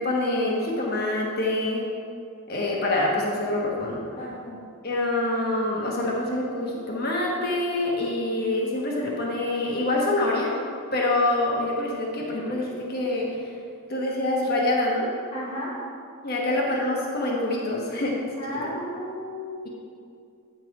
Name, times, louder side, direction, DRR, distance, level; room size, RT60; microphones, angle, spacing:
voice 1, 0.0-1.8 2.5-4.0 4.8-10.5 10.9-13.5 13.9-15.1 16.2-18.2 18.6-18.7, left 2 dB, 45° left, -3 dB, 1.1 m, -26 dB
voice 2, 4.2-4.7 15.3-15.7 16.4-16.5 18.4-19.7, left 1 dB, 25° left, -9 dB, 1.3 m, -34 dB
9.1 x 5.8 x 4.7 m, 2.3 s
head